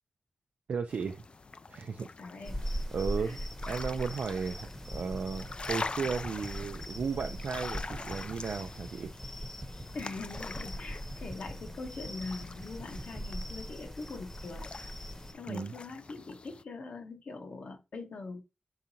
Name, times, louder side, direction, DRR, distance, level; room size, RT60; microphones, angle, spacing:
voice 1, 0.7-1.2 1.7-2.1 2.9-3.4 3.7-9.1 15.5-15.7, right 5 dB, 80° right, 0.4 m, -35 dB
sound 1, 0.9-16.6, left 3 dB, 50° left, 0.3 m, -45 dB
voice 2, 2.2-2.6 3.2-3.5 9.9-14.7 15.3-18.4, left 3 dB, 80° left, 1.2 m, -42 dB
sound 2, 2.4-15.3, equal, 15° left, 0.9 m, -41 dB
sound 3, 4.8-13.3, right 1 dB, 30° right, 1.3 m, -45 dB
4.8 x 3.7 x 2.8 m
cardioid pair, 45°, 2 cm